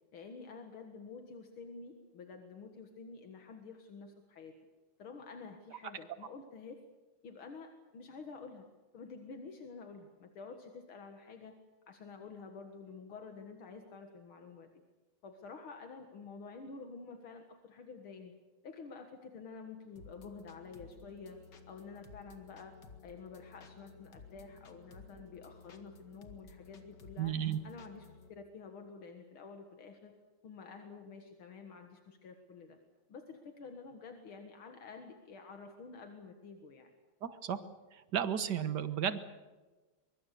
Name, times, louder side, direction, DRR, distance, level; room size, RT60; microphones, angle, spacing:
voice 1, 0.1-4.5 5.0-6.8 7.2-8.7 8.9-11.6 11.9-14.7 15.2-18.3 18.6-21.4 21.7-22.8 23.0-27.4 27.6-30.2 30.4-32.8 33.1-36.9, left 4 dB, 75° left, 5 dB, 2.5 m, -49 dB
sound 1, 20.0-28.3, left 4 dB, 55° left, 2.5 m, -55 dB
voice 2, 27.2-27.6 37.2-37.6 37.9-39.2, right 9 dB, 55° right, 12 dB, 1.7 m, -33 dB
23.5 x 23.5 x 6.8 m, 1.2 s
omnidirectional pair, 2.3 m